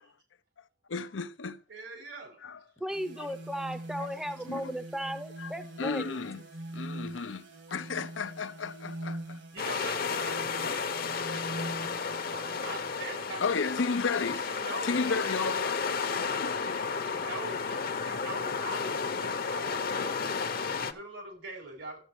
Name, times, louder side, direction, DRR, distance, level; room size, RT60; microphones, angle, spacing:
voice 1, 0.9-1.6 2.4-2.6 3.2-3.3 4.0-4.1 4.5-4.7 5.4-6.4 6.7-9.4 13.4-14.5 14.8-15.9 16.2-16.8, left 4 dB, 85° left, 0.7 m, -33 dB
voice 2, 1.7-2.4 9.5-12.0 12.3-13.8 14.2-15.2 17.0-20.2 20.7-22.0, right 2 dB, 90° right, 4.6 m, -43 dB
voice 3, 2.8-6.2, equal, 5° right, 0.6 m, -36 dB
sound 1, 2.9-12.9, right 1 dB, 65° right, 1.9 m, -43 dB
sound 2, 9.6-20.9, left 5 dB, 55° left, 0.9 m, -32 dB
13.0 x 8.1 x 3.1 m
head